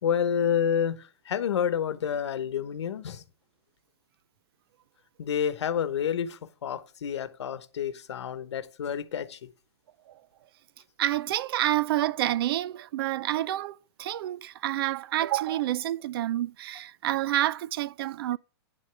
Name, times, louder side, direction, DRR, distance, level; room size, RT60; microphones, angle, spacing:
voice 1, 0.0-3.2 5.2-9.5, left 8 dB, 90° left, 1.1 m, -29 dB
voice 2, 11.0-18.4, right 13 dB, 60° right, 0.5 m, -28 dB
9.6 x 7.7 x 3.4 m
hypercardioid pair, 150°, 14 cm